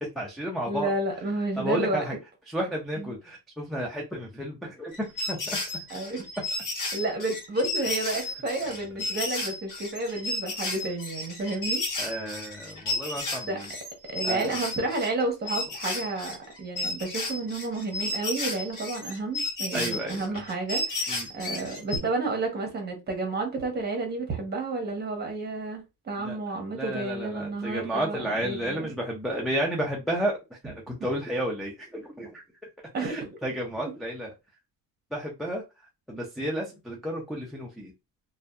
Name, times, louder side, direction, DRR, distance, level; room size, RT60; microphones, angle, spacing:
voice 1, 0.0-0.9 1.6-2.2 2.5-5.6 12.0-13.7 14.2-14.6 19.7-20.4 21.1-21.5 26.2-32.4 33.0-34.3 35.1-35.6 36.1-37.9, right 1 dB, ahead, 0.4 m, -32 dB
voice 2, 0.7-2.0 3.0-3.1 5.9-6.3 6.9-11.8 13.4-13.6 14.1-28.9 32.9-33.3, right 2 dB, 25° right, 0.9 m, -31 dB
sound 1, 4.9-15.2 15.5-22.0, left 2 dB, 60° left, 1.1 m, -33 dB
2.5 x 2.3 x 2.2 m
cardioid pair, 125°, 36 cm